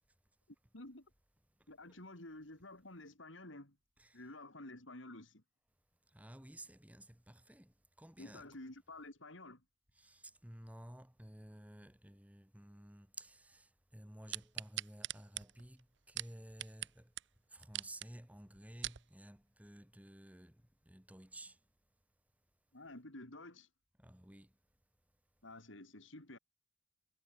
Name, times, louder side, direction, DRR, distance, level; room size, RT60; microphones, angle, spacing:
voice 1, 0.7-1.1 1.7-3.8 4.1-5.4 8.2-9.6 22.7-23.7 25.4-26.4, left 2 dB, 70° left, 3.7 m, -51 dB
voice 2, 6.1-8.5 9.9-17.1 17.5-20.5 20.9-21.6 24.0-24.5, right 1 dB, 5° right, 1.4 m, -54 dB
sound 1, 14.3-16.9 17.2-17.3 17.6-18.1 18.6-19.0 19.6-19.7, right 14 dB, 60° right, 0.8 m, -42 dB
head